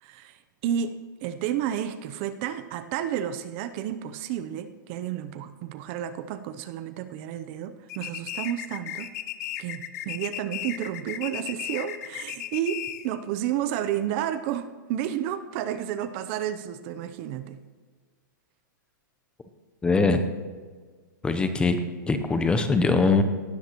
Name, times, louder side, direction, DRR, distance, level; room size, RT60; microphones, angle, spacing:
voice 1, 0.0-0.9 1.2-9.1 9.6-17.6, right 10 dB, 35° right, 11 dB, 0.6 m, -31 dB
sound 1, 7.9-13.2, left 12 dB, 50° left, 0.8 m, -35 dB
voice 2, 19.8-20.2 21.2-21.8 22.1-23.2, left 3 dB, 10° left, 9 dB, 0.7 m, -22 dB
18.0 x 13.0 x 3.0 m, 1.5 s
hypercardioid pair, 150°, 11 cm